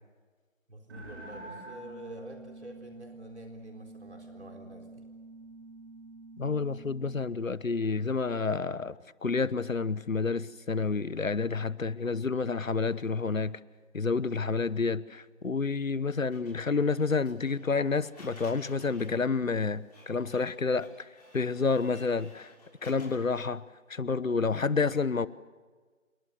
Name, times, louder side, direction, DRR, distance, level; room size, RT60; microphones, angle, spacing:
voice 1, 0.7-5.0, equal, 55° right, 4.0 m, -47 dB
sound 1, 0.9-7.3, right 2 dB, 15° right, 4.9 m, -47 dB
voice 2, 6.4-13.6 13.9-21.1 21.3-22.5 22.8-23.6 23.9-25.3, left 4 dB, 80° left, 1.1 m, -29 dB
Printer, 16.3-23.5, left 1 dB, 30° left, 6.8 m, -56 dB
28.0 x 21.5 x 6.6 m
figure-of-eight pair, 165°, 40 cm